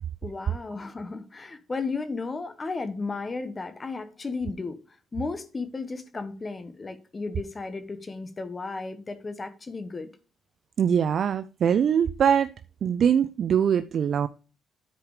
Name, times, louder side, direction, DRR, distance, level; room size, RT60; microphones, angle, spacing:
voice 1, 0.2-4.8 5.1-10.1, left 3 dB, 30° left, 1.2 m, -34 dB
voice 2, 10.8-12.5 12.8-14.3, right 8 dB, 60° right, 0.4 m, -22 dB
10.5 x 4.9 x 4.9 m
cardioid pair, 90°, 0 cm